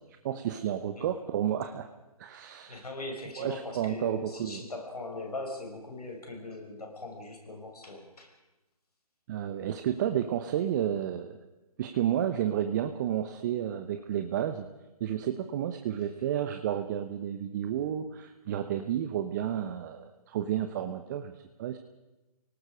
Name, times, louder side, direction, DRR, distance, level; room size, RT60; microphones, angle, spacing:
voice 1, 0.2-1.9 2.2-2.8 3.4-4.6 9.3-11.4 11.8-14.7 15.0-21.3 21.6-21.8, right 10 dB, 30° right, 7 dB, 0.9 m, -31 dB
voice 2, 2.7-8.3, left 2 dB, 80° left, 1 dB, 6.1 m, -40 dB
29.5 x 18.5 x 5.1 m, 1.1 s
figure-of-eight pair, 145°, 19 cm